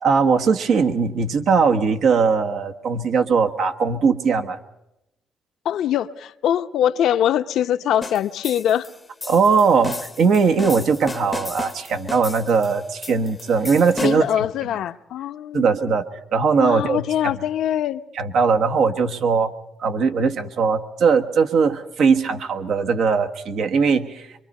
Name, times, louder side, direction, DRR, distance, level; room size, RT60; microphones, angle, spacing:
voice 1, 0.0-4.6 9.3-14.4 15.5-16.0 16.3-17.3 18.2-19.5 19.8-24.3, right 5 dB, 70° right, 1.3 m, -20 dB
voice 2, 5.6-8.9 14.0-15.6 16.6-18.0, left 10 dB, 75° left, 0.7 m, -22 dB
sound 1, 8.0-14.4, left 3 dB, 20° left, 0.7 m, -35 dB
24.5 x 23.5 x 5.4 m
cardioid pair, 90°, 0 cm